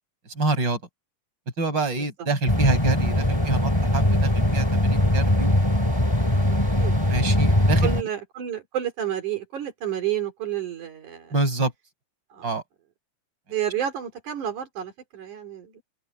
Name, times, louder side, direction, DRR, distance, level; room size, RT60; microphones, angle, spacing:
voice 1, 0.3-0.8 1.6-5.5 7.1-7.9 11.3-11.7 12.4-12.6, right 2 dB, 35° right, 6.5 m, -26 dB
sound 1, 2.5-8.0, left 1 dB, 10° left, 2.2 m, -21 dB
voice 2, 7.8-11.3 12.3-12.5 13.5-15.8, right 10 dB, 75° right, 4.4 m, -30 dB
open air
omnidirectional pair, 3.5 m